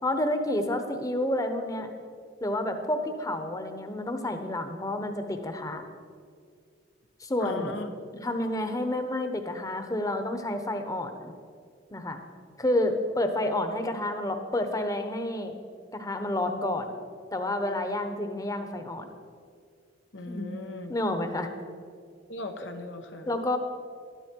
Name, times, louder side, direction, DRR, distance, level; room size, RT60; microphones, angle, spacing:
voice 1, 0.0-1.9 2.4-5.8 7.2-7.8 8.2-11.3 11.9-12.2 12.6-15.5 15.9-16.9 17.3-19.1 20.3-20.5 20.9-21.5 23.3-23.6, left 1 dB, 20° left, 6 dB, 1.0 m, -29 dB
voice 2, 7.4-7.9 20.1-20.9 22.3-23.3, left 2 dB, 85° left, 6 dB, 1.3 m, -37 dB
12.5 x 12.5 x 4.6 m, 2.1 s
head